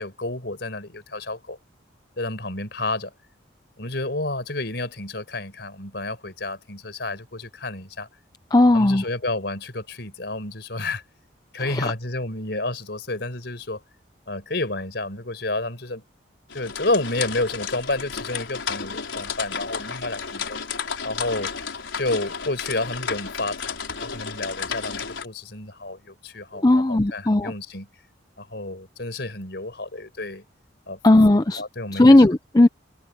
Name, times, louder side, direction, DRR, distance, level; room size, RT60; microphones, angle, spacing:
voice 1, 0.0-1.6 2.2-3.1 3.8-8.1 8.7-11.0 11.5-13.8 14.3-16.0 16.5-20.6 21.0-21.5 21.9-27.9 28.4-30.4 30.9-31.0 31.6-32.2, left 2 dB, 60° left, 4.8 m, -30 dB
voice 2, 8.5-9.0 11.7-11.9 26.6-27.5 31.0-31.6 31.9-32.7, left 2 dB, 20° left, 0.5 m, -16 dB
sound 1, 16.5-25.2, left 6 dB, 90° left, 4.9 m, -32 dB
head